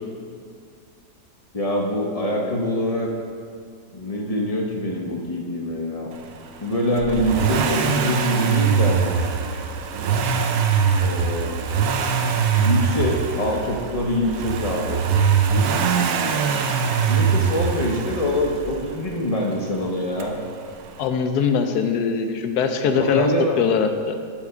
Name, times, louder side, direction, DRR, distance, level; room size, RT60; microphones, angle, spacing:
voice 1, 1.5-3.1 3.9-6.1 6.6-9.2 11.0-11.6 12.6-15.0 17.0-20.4 22.8-23.6, left 1 dB, 40° left, 0 dB, 0.5 m, -24 dB
Accelerating revving vroom, 7.0-18.9 20.2-20.3, right 6 dB, 70° right, 1.0 m, -22 dB
voice 2, 21.0-23.3 23.6-24.2, left 6 dB, 75° left, 7 dB, 1.1 m, -21 dB
7.2 x 4.7 x 6.7 m, 2.1 s
omnidirectional pair, 1.8 m